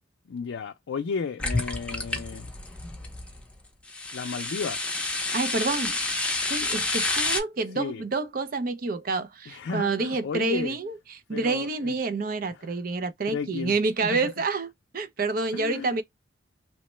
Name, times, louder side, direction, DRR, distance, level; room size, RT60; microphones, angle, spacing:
voice 1, 0.2-2.5 4.1-4.8 7.7-8.0 9.5-10.8 11.3-12.0 12.5-12.7 13.3-13.7 14.0-14.3 15.5-16.0, left 5 dB, 85° left, 0.4 m, -33 dB
sound 1, 1.4-3.4 3.9-7.4, left 2 dB, 5° left, 0.6 m, -29 dB
voice 2, 5.3-6.0 6.5-10.9 11.3-16.0, right 3 dB, 50° right, 0.5 m, -28 dB
3.0 x 2.1 x 3.0 m
head